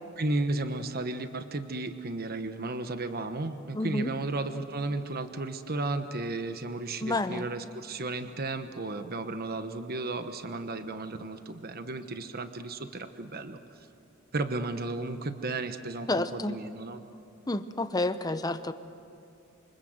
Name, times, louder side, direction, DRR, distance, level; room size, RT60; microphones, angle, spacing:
voice 1, 0.2-13.6 14.3-17.0, right 2 dB, 50° right, 8 dB, 1.1 m, -34 dB
voice 2, 3.7-4.1 7.0-7.4 16.1-16.6 17.5-18.7, left 2 dB, 20° left, 10 dB, 0.9 m, -29 dB
27.5 x 25.0 x 8.0 m, 2.6 s
head